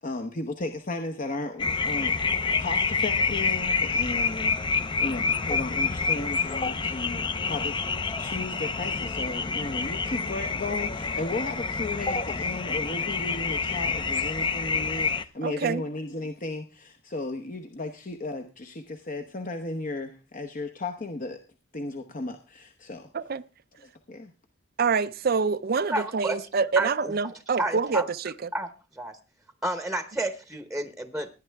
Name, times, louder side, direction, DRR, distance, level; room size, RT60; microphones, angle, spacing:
voice 1, 0.0-2.2 2.6-7.8 8.2-21.4 21.7-23.1 23.8-24.3, left 2 dB, 45° left, 0.9 m, -35 dB
sound 1, 1.6-15.2, left 4 dB, 25° left, 0.6 m, -28 dB
voice 2, 15.4-15.8 23.1-23.4 24.8-28.5, right 5 dB, 50° right, 0.5 m, -26 dB
voice 3, 25.9-26.4 26.8-27.1 27.6-28.1 28.5-28.7 29.0-29.2 29.6-31.3, right 1 dB, 5° right, 0.9 m, -30 dB
17.5 x 10.0 x 3.5 m
head